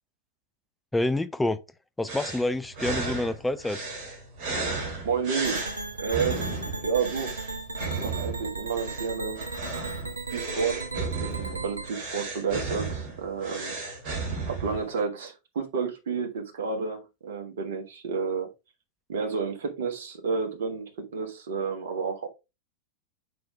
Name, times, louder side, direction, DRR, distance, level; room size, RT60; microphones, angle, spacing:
voice 1, 0.9-1.6 2.0-3.8, left 2 dB, 5° left, 0.4 m, -27 dB
sound 1, 2.1-15.0, right 3 dB, 40° right, 2.7 m, -34 dB
voice 2, 5.0-5.7 6.0-6.5 6.8-7.5 8.0-9.4 10.3-10.8 11.2-13.8 14.5-18.5 19.1-22.3, right 5 dB, 60° right, 1.4 m, -30 dB
sound 2, 5.4-11.9, right 3 dB, 75° right, 0.7 m, -36 dB
6.0 x 4.8 x 3.4 m
figure-of-eight pair, 90°, 0 cm